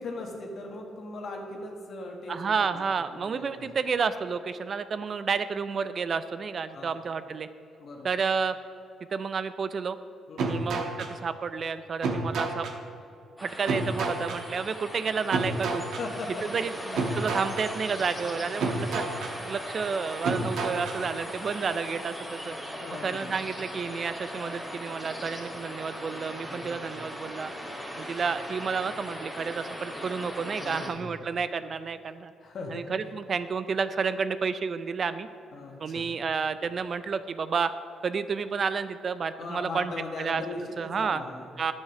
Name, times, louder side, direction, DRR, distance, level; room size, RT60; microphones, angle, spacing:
voice 1, 0.0-2.8 3.1-3.4 6.7-6.9 7.8-8.1 10.3-10.6 15.9-16.4 22.8-23.3 26.4-27.1 30.6-31.1 32.4-32.9 35.5-36.1 39.4-41.5, left 3 dB, 55° left, 1 dB, 1.5 m, -39 dB
voice 2, 2.3-7.5 8.0-8.6 9.1-10.0 10.4-12.7 13.4-15.8 16.5-19.1 19.4-22.6 23.0-27.5 28.0-32.3 32.7-35.3 35.8-37.7 38.0-39.9 40.2-40.4 40.8-41.2 41.6-41.7, right 5 dB, 45° right, 13 dB, 0.4 m, -30 dB
sound 1, 10.4-11.1 12.0-12.7 13.7-14.4 15.3-16.0 17.0-17.7 18.6-19.3 20.2-21.0, right 3 dB, 75° right, 1.2 m, -30 dB
sound 2, 13.4-30.9, equal, 5° right, 2.5 m, -39 dB
9.5 x 7.3 x 5.9 m, 2.6 s
cardioid pair, 90°, 0 cm